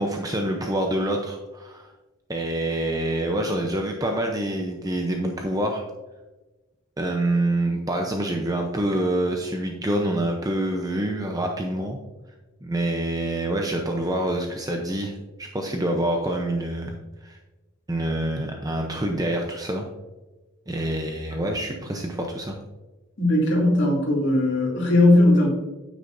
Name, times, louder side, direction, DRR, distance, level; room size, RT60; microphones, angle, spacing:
voice 1, 0.0-1.9 2.3-5.8 7.0-12.0 12.6-17.0 17.2-17.4 17.9-19.8 20.7-22.6, right 1 dB, 15° right, 2 dB, 0.7 m, -26 dB
voice 2, 23.2-25.5, left 1 dB, 55° left, -4 dB, 2.7 m, -18 dB
9.4 x 8.4 x 2.6 m, 1.2 s
head